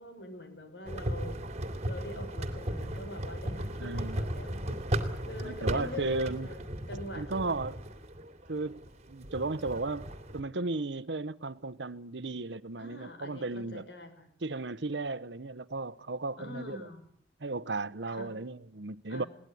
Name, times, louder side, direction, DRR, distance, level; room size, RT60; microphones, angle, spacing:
voice 1, 0.0-1.4 1.8-4.8 5.3-6.6 6.9-7.6 12.8-14.3 16.4-17.1 18.1-18.3 19.1-19.3, left 1 dB, 70° left, 6.0 m, -44 dB
sound 1, 0.9-10.4, right 1 dB, 40° right, 2.7 m, -36 dB
voice 2, 3.8-4.2 5.4-6.5 7.1-7.8 8.5-10.1 10.3-13.9 14.4-16.9 17.4-19.2, right 3 dB, 75° right, 1.0 m, -35 dB
22.0 x 18.5 x 9.4 m
head